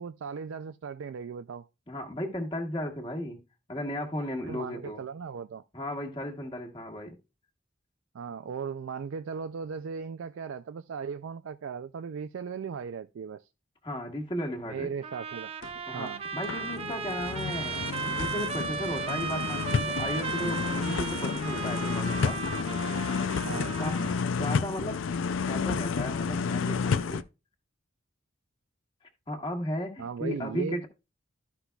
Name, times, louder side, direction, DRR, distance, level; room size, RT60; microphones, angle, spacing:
voice 1, 0.0-1.7 4.4-5.6 8.1-13.5 14.6-15.5 15.9-16.2 23.5-23.8 30.0-30.9, right 6 dB, 90° right, 0.4 m, -37 dB
voice 2, 1.9-3.4 3.7-5.0 5.7-7.2 13.8-14.9 15.9-22.5 23.8-27.2 29.3-30.9, left 1 dB, 25° left, 1.6 m, -35 dB
Trumpet, 15.0-24.2, right 6 dB, 30° right, 0.6 m, -36 dB
sound 1, 15.6-15.8 16.2-27.2, left 5 dB, 90° left, 0.5 m, -31 dB
12.5 x 5.9 x 2.3 m
head